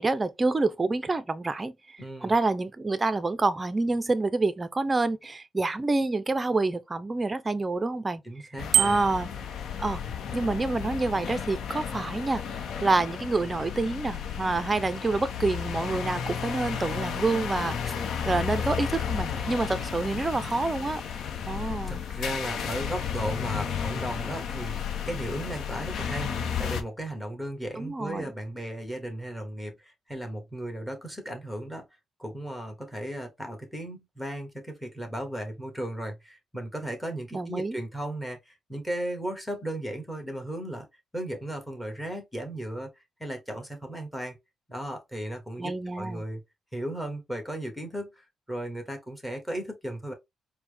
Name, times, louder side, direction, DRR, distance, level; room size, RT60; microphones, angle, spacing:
voice 1, 0.0-8.2 8.7-9.3 9.8-10.0 10.3-12.4 12.8-17.9 18.3-21.0 21.5-22.0 27.8-28.3 37.3-37.8 45.6-46.2, right 3 dB, 25° right, 0.5 m, -27 dB
voice 2, 2.0-2.3 8.2-9.0 19.9-20.0 21.9-26.3 26.6-31.8 32.2-40.9 41.1-42.9 43.2-44.3 44.7-46.4 46.7-50.1, right 1 dB, 5° left, 1.6 m, -36 dB
sound 1, 8.6-26.8, left 7 dB, 70° left, 0.8 m, -33 dB
Bicycle bell, 8.7-9.3, right 10 dB, 75° right, 0.3 m, -24 dB
4.4 x 2.2 x 3.4 m
cardioid pair, 90°, 0 cm